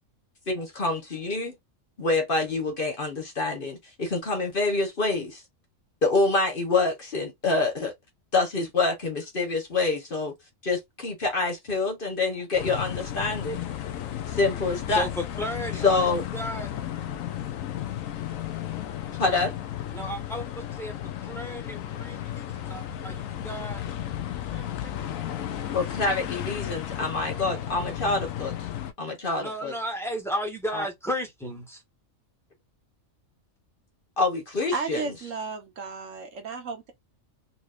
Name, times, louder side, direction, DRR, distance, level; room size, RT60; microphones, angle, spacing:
voice 1, 0.5-1.5 2.0-5.4 6.0-7.9 8.3-10.3 10.6-13.7 14.3-15.0 15.8-16.2 19.2-19.5 25.7-28.5 29.0-29.7 30.7-30.9 34.2-35.0, left 3 dB, 45° left, 1.1 m, -26 dB
sound 1, 12.5-28.9, left 11 dB, 80° left, 1.0 m, -34 dB
voice 2, 14.9-16.7 19.9-20.9 21.2-23.8 24.5-25.4 29.4-31.8, equal, ahead, 1.4 m, -34 dB
voice 3, 34.7-36.9, right 4 dB, 75° right, 1.4 m, -34 dB
4.1 x 2.9 x 2.5 m
omnidirectional pair, 1.4 m